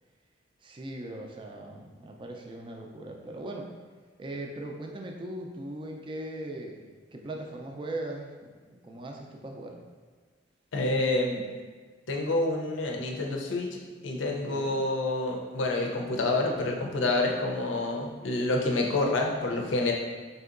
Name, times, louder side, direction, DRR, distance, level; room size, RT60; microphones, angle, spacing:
voice 1, 0.6-3.7 4.2-6.9 7.1-9.8 14.3-14.8, right 1 dB, 25° right, 1 dB, 0.3 m, -39 dB
voice 2, 10.7-11.4 12.1-13.7 14.0-19.9, left 2 dB, 85° left, 0 dB, 0.6 m, -28 dB
4.3 x 2.7 x 2.5 m, 1.5 s
head